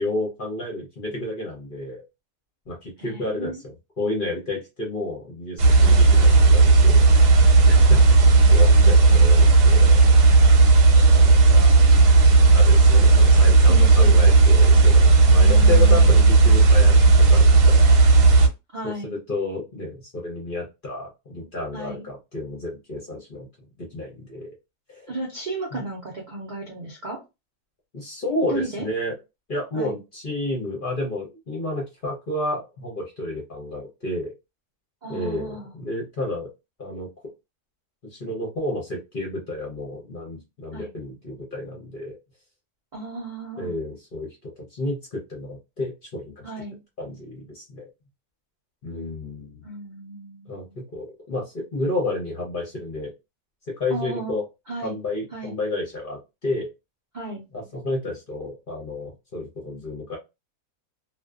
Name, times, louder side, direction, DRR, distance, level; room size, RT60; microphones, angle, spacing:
voice 1, 0.0-2.0 2.7-7.1 7.7-8.2 8.5-10.0 10.9-11.7 12.5-16.9 17.3-18.0 18.8-23.5 23.8-24.6 24.9-25.1 25.7-25.8 27.9-29.1 29.5-34.3 35.1-36.5 36.8-37.1 38.0-42.2 43.6-46.5 47.0-47.9 48.8-49.6 50.5-53.1 53.8-54.4 54.8-56.7 57.5-60.2, left 2 dB, 45° left, -1 dB, 0.7 m, -31 dB
voice 2, 3.0-3.6 5.8-6.1 7.9-8.8 13.7-14.3 15.4-16.3 18.7-19.1 21.7-22.1 25.1-27.2 28.5-28.9 29.7-30.0 35.0-35.7 40.7-40.9 42.9-43.7 46.4-46.8 49.6-50.8 53.9-54.4 54.7-55.0 55.3-55.6 57.1-57.5, right 2 dB, 75° right, -1 dB, 0.4 m, -34 dB
sound 1, 5.6-18.5, right 3 dB, 90° right, 1.2 m, -13 dB
2.5 x 2.2 x 2.3 m, 0.24 s
omnidirectional pair, 1.7 m